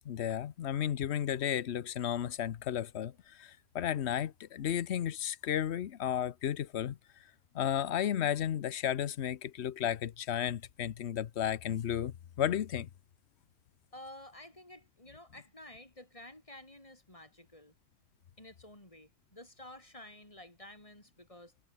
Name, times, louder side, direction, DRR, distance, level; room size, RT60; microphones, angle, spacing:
voice 1, 0.1-7.0 7.5-12.9, left 10 dB, 80° left, 1.1 m, -33 dB
voice 2, 13.9-17.7 18.4-21.5, left 1 dB, 30° left, 5.0 m, -52 dB
omnidirectional pair, 1.1 m